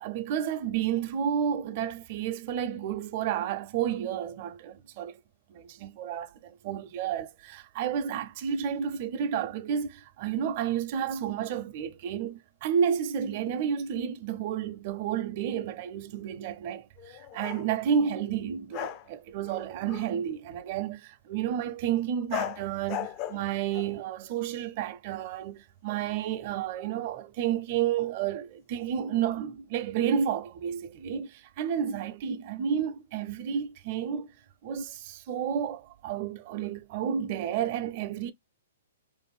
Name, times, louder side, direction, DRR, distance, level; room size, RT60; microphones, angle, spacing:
voice 1, 0.0-5.2 5.5-34.3 34.6-38.3, right 8 dB, 45° right, 0.5 m, -31 dB
sound 1, 17.0-17.7 18.7-19.1 19.4-20.2 22.3-24.0, left 12 dB, 35° left, 0.3 m, -37 dB
2.6 x 2.5 x 2.3 m
hypercardioid pair, 135°, 0 cm